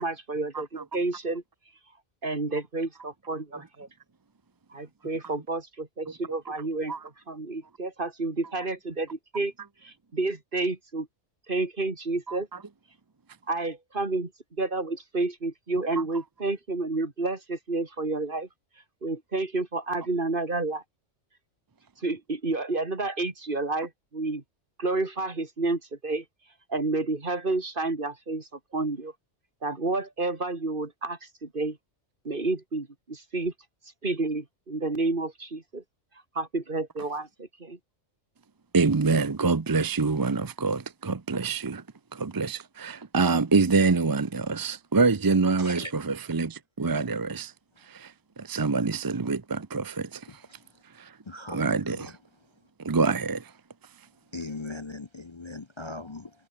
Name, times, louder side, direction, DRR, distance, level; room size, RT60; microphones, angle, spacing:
voice 1, 0.0-0.7 0.9-1.4 2.2-3.9 4.7-6.9 7.3-9.5 9.8-11.1 11.5-12.5 13.5-14.3 14.6-18.5 19.0-20.8 22.0-24.4 24.8-26.2 26.7-29.1 29.6-31.8 32.2-33.5 34.0-35.8 36.3-37.8, right 3 dB, 45° right, 2.8 m, -30 dB
voice 2, 0.5-0.8 6.9-7.0 12.3-12.4 38.7-41.8 42.1-47.5 47.8-50.4 50.9-51.2 51.5-52.1 52.8-53.5, right 4 dB, 25° right, 0.5 m, -26 dB
voice 3, 45.6-45.9 51.3-51.6 51.9-52.1 54.3-56.3, left 2 dB, 25° left, 0.8 m, -38 dB
omnidirectional pair, 1.2 m